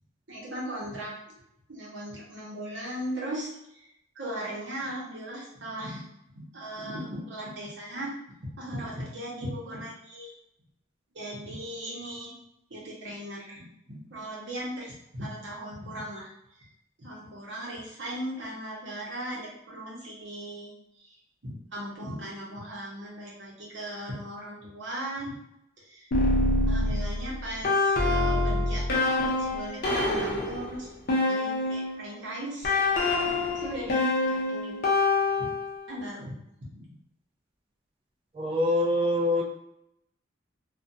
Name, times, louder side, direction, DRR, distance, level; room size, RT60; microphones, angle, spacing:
voice 1, 0.3-1.1 1.7-3.9 4.1-6.0 6.3-8.1 8.6-10.3 11.1-12.3 12.7-16.3 16.6-16.7 17.0-20.7 21.0-21.2 21.4-25.3 25.8-26.1 26.7-30.9 31.2-32.7 33.5-34.8 35.9-36.3 36.7-36.9, right 1 dB, 65° right, -4 dB, 0.9 m, -38 dB
sound 1, 26.1-32.0 32.6-35.8, left 2 dB, 50° left, 0.5 m, -26 dB
voice 2, 38.3-39.4, left 1 dB, 30° right, 0 dB, 0.4 m, -24 dB
2.5 x 2.2 x 2.6 m, 0.80 s
head